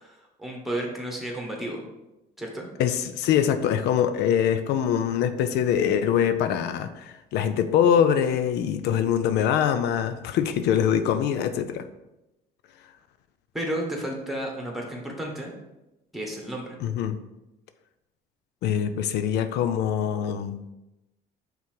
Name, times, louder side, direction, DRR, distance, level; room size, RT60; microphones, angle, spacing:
voice 1, 0.0-1.8 2.4-2.7 13.5-15.5 16.1-16.8, right 1 dB, ahead, 0 dB, 1.5 m, -32 dB
voice 2, 2.8-11.9 16.8-17.2 18.6-20.6, left 9 dB, 80° left, 10 dB, 0.4 m, -23 dB
5.6 x 3.8 x 4.7 m, 0.95 s
cardioid pair, 110°, 17 cm